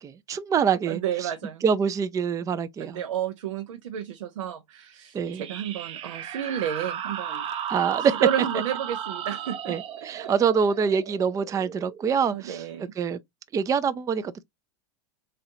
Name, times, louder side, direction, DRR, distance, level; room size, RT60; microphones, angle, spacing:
voice 1, 0.0-1.3 1.6-3.0 5.1-5.4 7.7-8.1 9.7-12.7 13.0-13.2 13.5-14.4, right 6 dB, 20° right, 0.4 m, -25 dB
voice 2, 0.9-1.6 2.8-7.5 8.0-9.8 10.2-10.3 11.6-11.7 12.2-12.9, right 9 dB, 85° right, 0.7 m, -31 dB
sound 1, 5.2-12.5, right 9 dB, 40° right, 0.8 m, -35 dB
4.2 x 3.9 x 2.6 m
hypercardioid pair, 105°, 16 cm